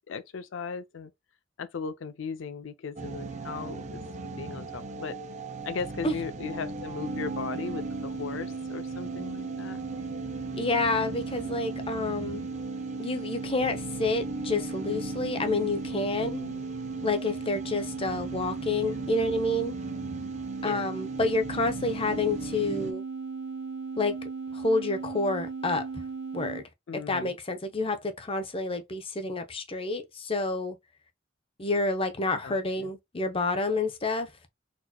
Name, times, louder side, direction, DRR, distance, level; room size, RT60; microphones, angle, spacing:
voice 1, 0.1-1.1 1.6-4.0 4.4-5.1 5.6-9.8 16.2-16.7 18.8-19.1 20.6-20.9 26.9-27.3 32.4-32.9, left 5 dB, 75° left, 0.5 m, -37 dB
sound 1, 3.0-22.9, right 2 dB, 40° right, 0.6 m, -39 dB
sound 2, 7.1-26.6, right 4 dB, 65° right, 0.8 m, -37 dB
voice 2, 10.6-12.4 13.0-16.4 17.0-19.8 20.6-23.0 24.0-24.2 24.5-25.9 26.3-26.6 26.9-30.8 31.6-34.3, left 2 dB, 30° left, 0.7 m, -29 dB
4.1 x 2.9 x 2.2 m
head